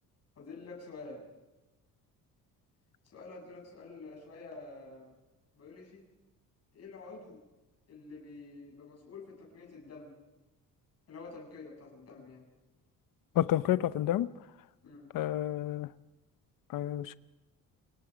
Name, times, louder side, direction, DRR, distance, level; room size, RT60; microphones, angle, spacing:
voice 1, 0.4-1.2 3.1-5.1 5.5-6.0 6.7-7.4 7.9-10.2 11.1-12.5 14.8-15.1, left 3 dB, 45° left, 7.7 m, -48 dB
voice 2, 13.4-14.3 15.1-15.9 16.7-17.2, left 12 dB, 70° left, 0.9 m, -29 dB
28.0 x 18.5 x 5.2 m
cardioid pair, 155°, 34 cm